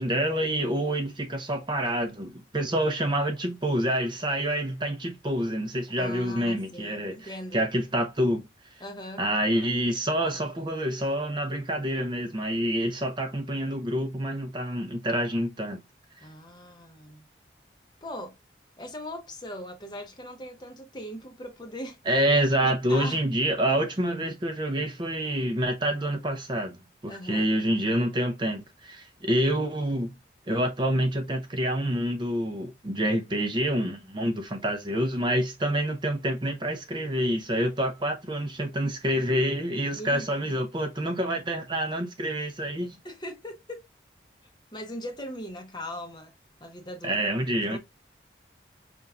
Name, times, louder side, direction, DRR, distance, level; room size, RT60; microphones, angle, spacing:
voice 1, 0.0-8.4 9.2-15.8 22.1-26.8 27.0-30.1 30.5-43.0 47.0-47.8, right 1 dB, 25° right, 0.6 m, -27 dB
voice 2, 6.0-7.6 8.8-9.2 16.2-17.2 18.0-18.4 18.8-22.0 22.6-23.2 27.1-27.5 39.9-40.6 43.0-43.8 44.7-46.3 46.6-47.3 47.6-47.8, left 1 dB, 25° left, 0.8 m, -39 dB
5.4 x 3.4 x 2.3 m
head